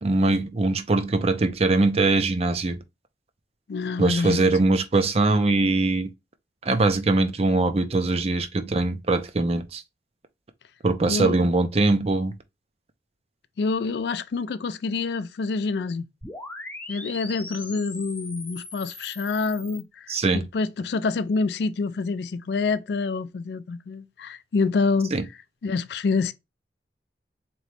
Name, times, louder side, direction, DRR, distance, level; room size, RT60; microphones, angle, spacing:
voice 1, 0.0-2.8 4.0-6.1 6.6-9.8 10.8-12.3 20.1-20.4 25.1-25.2, right 2 dB, 35° right, 0.5 m, -22 dB
voice 2, 3.7-4.5 11.1-11.4 13.6-16.1 16.9-25.1 25.6-26.3, left 4 dB, 70° left, 0.4 m, -27 dB
sound 1, 16.2-19.8, left 2 dB, 10° left, 0.7 m, -40 dB
3.8 x 3.0 x 3.2 m
head